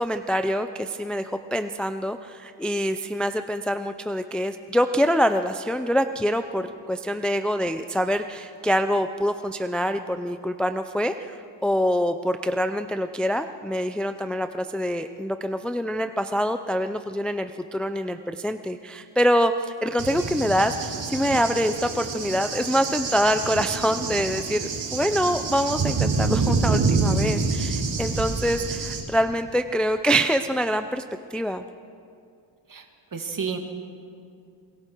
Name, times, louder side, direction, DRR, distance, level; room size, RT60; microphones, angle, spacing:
voice 1, 0.0-11.4 11.6-31.0 31.3-31.6, equal, ahead, 8 dB, 0.5 m, -25 dB
Cricket / Thunder, 20.0-29.0, right 4 dB, 75° right, 2.9 m, -27 dB
voice 2, 33.1-33.6, right 6 dB, 45° right, 4 dB, 2.1 m, -30 dB
28.0 x 21.5 x 4.6 m, 2.4 s
wide cardioid pair, 125°, 46 cm